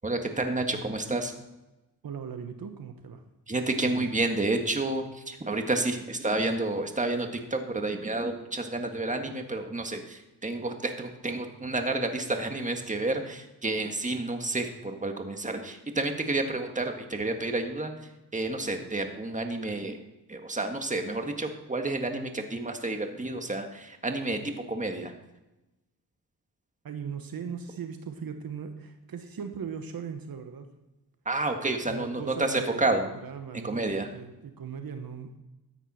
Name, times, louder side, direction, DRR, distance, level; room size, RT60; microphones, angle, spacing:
voice 1, 0.0-1.3 3.5-17.9 18.3-20.0 20.3-25.1 31.3-33.1 33.6-34.1, right 2 dB, 20° right, 5 dB, 1.8 m, -30 dB
voice 2, 2.0-3.2 26.8-30.7 31.9-35.3, right 6 dB, 65° right, 7 dB, 1.2 m, -38 dB
13.5 x 9.0 x 4.3 m, 1.0 s
cardioid pair, 70°, 38 cm